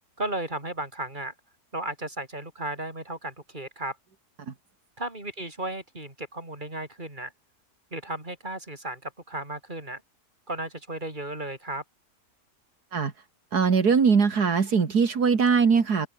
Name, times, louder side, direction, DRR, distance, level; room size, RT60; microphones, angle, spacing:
voice 1, 0.2-1.3 1.7-4.0 5.0-7.3 7.9-10.0 10.5-11.8, right 1 dB, 30° right, 5.6 m, -34 dB
voice 2, 13.5-16.1, right 5 dB, 75° right, 2.7 m, -21 dB
open air
omnidirectional pair, 1.7 m